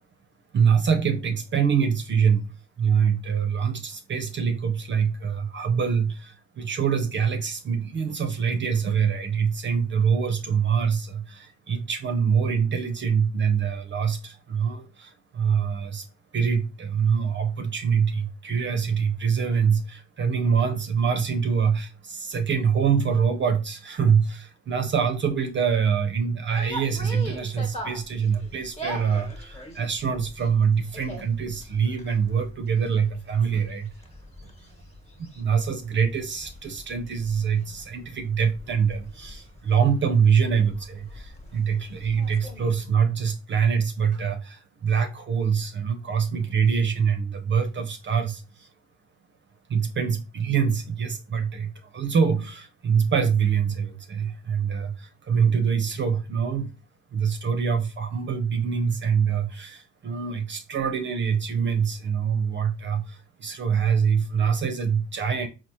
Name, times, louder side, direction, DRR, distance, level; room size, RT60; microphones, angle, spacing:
voice 1, 0.5-16.1 16.3-33.9 35.2-48.7 49.7-56.7 57.1-65.5, right 6 dB, 35° right, 0.6 m, -24 dB
sound 1, 26.6-42.8, equal, 20° left, 1.2 m, -42 dB
4.0 x 2.0 x 2.9 m
hypercardioid pair, 65°, 33 cm